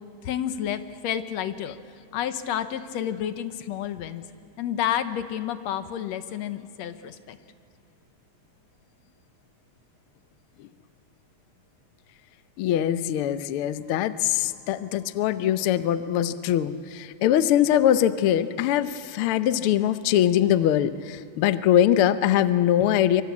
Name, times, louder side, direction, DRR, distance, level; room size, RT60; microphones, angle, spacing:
voice 1, 0.2-1.7 2.1-4.2 4.6-7.4, left 10 dB, 65° left, 11 dB, 2.0 m, -30 dB
voice 2, 12.6-23.2, left 11 dB, 85° left, 12 dB, 1.2 m, -22 dB
25.5 x 24.0 x 8.5 m, 2.5 s
omnidirectional pair, 3.6 m